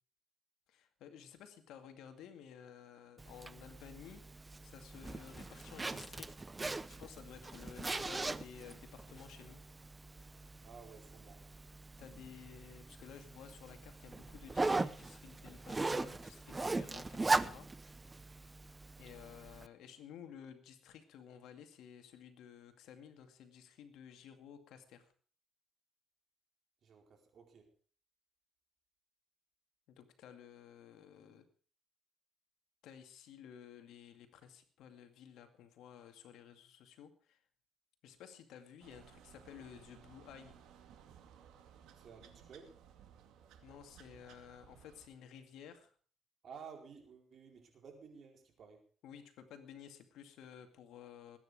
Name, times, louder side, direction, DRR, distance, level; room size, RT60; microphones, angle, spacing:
voice 1, 0.7-4.2 4.6-6.3 7.0-9.6 12.0-17.7 19.0-25.1 29.9-31.4 32.8-37.4 38.0-40.5 43.6-45.9 49.0-51.4, left 8 dB, 85° left, 7 dB, 2.2 m, -54 dB
Zipper (clothing), 3.2-19.7, right 3 dB, 20° right, 0.7 m, -40 dB
voice 2, 10.6-11.5 26.8-27.7 41.9-42.8 46.4-48.8, right 6 dB, 60° right, 3 dB, 4.4 m, -54 dB
sound 1, 38.8-45.1, right 8 dB, 90° right, 2.1 m, -60 dB
20.5 x 9.7 x 5.0 m, 0.43 s
cardioid pair, 90°, 0 cm